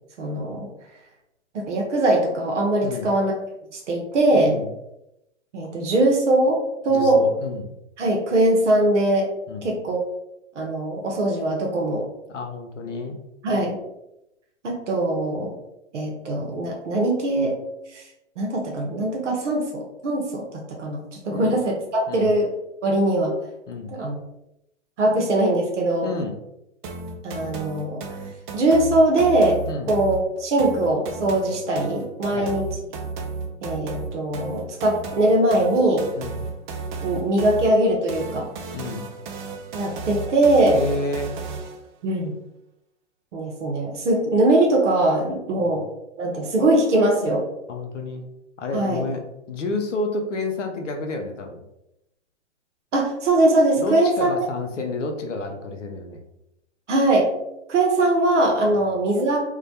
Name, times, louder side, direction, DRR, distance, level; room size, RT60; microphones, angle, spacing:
voice 1, 0.2-0.7 1.5-3.3 3.7-4.6 5.5-7.2 8.0-9.3 9.6-10.0 10.6-12.0 13.4-13.8 14.6-15.5 15.9-17.6 17.9-18.0 18.4-22.5 22.8-23.3 23.9-24.2 25.0-26.1 27.2-28.0 28.5-29.6 29.9-32.6 33.6-36.0 37.0-38.5 39.7-40.8 42.0-42.3 43.3-45.8 46.2-47.4 48.7-49.0 52.9-54.3 56.9-57.3 57.7-59.5, right 1 dB, 80° right, 0 dB, 0.7 m, -21 dB
voice 2, 2.8-3.2 4.3-4.7 6.9-7.7 9.5-9.7 12.3-13.2 21.3-21.6 22.1-22.3 23.7-24.0 26.0-26.4 29.7-29.9 32.3-32.5 36.1-36.4 38.7-39.1 40.7-41.3 45.6-45.8 47.7-48.2 48.6-51.6 53.8-56.3, left 3 dB, 85° left, 4 dB, 0.6 m, -30 dB
sound 1, 26.8-41.9, right 4 dB, 45° right, 0.4 m, -34 dB
2.2 x 2.1 x 2.7 m, 0.85 s
hypercardioid pair, 110°, 36 cm